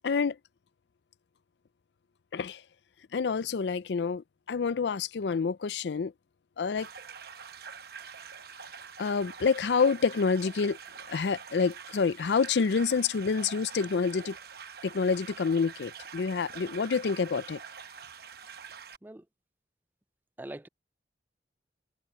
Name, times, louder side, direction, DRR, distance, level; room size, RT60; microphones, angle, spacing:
voice 1, 0.0-0.4 2.3-2.6 3.1-6.1 6.6-6.9 9.0-10.8 11.1-14.4 14.8-17.6, left 5 dB, 75° left, 0.5 m, -28 dB
sound 1, 6.8-19.0, right 6 dB, 60° right, 1.0 m, -45 dB
voice 2, 20.4-20.7, right 1 dB, 10° right, 0.4 m, -42 dB
head